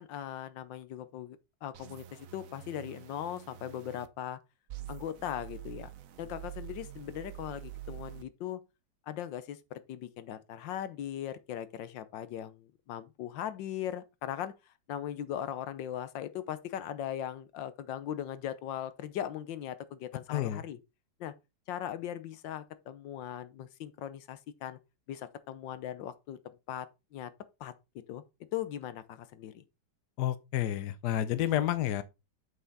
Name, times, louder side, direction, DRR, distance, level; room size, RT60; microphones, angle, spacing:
voice 1, 0.0-4.4 4.9-5.9 6.2-8.6 9.1-20.8 21.2-21.3 21.7-24.8 25.1-26.4 26.7-27.3 27.6-27.7 28.1-28.2 28.5-29.6, left 10 dB, 90° left, 1.5 m, -39 dB
sound 1, 1.7-4.1 4.7-8.2, right 13 dB, 60° right, 0.9 m, -46 dB
voice 2, 20.3-20.6 30.2-32.0, left 12 dB, 70° left, 1.3 m, -30 dB
7.9 x 5.8 x 4.0 m
omnidirectional pair, 1.9 m